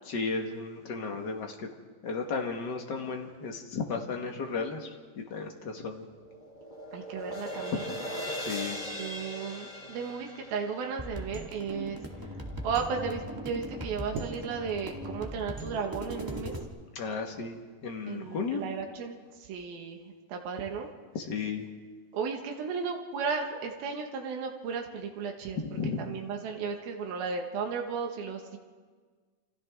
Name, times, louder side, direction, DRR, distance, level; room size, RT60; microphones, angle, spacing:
voice 1, 0.1-1.7 2.0-6.0 8.4-8.8 16.9-18.6 21.1-21.7 25.5-26.0, left 4 dB, 55° left, 2 dB, 1.2 m, -34 dB
sound 1, 5.7-12.1, equal, 20° left, 1.5 m, -39 dB
voice 2, 6.9-7.8 9.0-12.0 12.6-16.5 18.1-19.2 19.5-20.9 22.1-25.6 26.1-28.6, right 5 dB, 85° right, 2 dB, 3.4 m, -34 dB
sound 2, 11.0-16.6, equal, 15° right, 0.7 m, -39 dB
29.5 x 25.5 x 3.6 m, 1.5 s
omnidirectional pair, 4.2 m